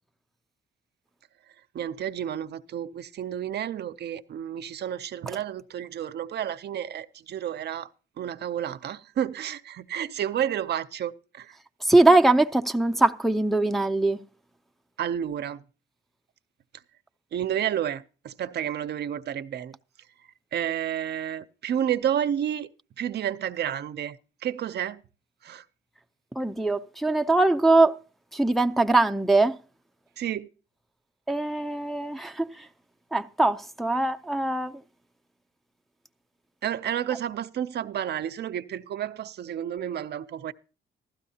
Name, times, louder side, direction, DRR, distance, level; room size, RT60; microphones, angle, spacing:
voice 1, 1.5-7.9 8.2-11.6 15.0-15.6 17.3-19.8 20.5-22.7 23.0-25.0 25.4-25.6 30.2-30.5 36.6-40.5, right 10 dB, 60° right, 0.5 m, -31 dB
voice 2, 11.9-14.2 26.4-27.9 28.3-29.5 31.3-32.5 33.1-34.7, right 2 dB, ahead, 0.5 m, -22 dB
15.0 x 13.0 x 2.8 m
cardioid pair, 90°, 20 cm